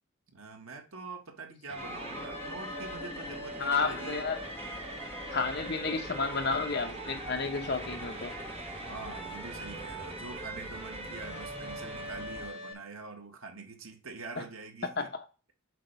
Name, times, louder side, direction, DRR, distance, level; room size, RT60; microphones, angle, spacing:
voice 1, 0.3-4.3 8.7-15.1, right 3 dB, 80° right, 1.4 m, -45 dB
sound 1, 1.7-12.7, right 2 dB, 30° right, 1.0 m, -42 dB
sound 2, 1.8-12.5, left 1 dB, 10° left, 1.1 m, -45 dB
voice 2, 3.6-4.4 5.3-8.3 15.0-15.1, left 4 dB, 50° left, 1.0 m, -31 dB
7.5 x 3.0 x 5.5 m
head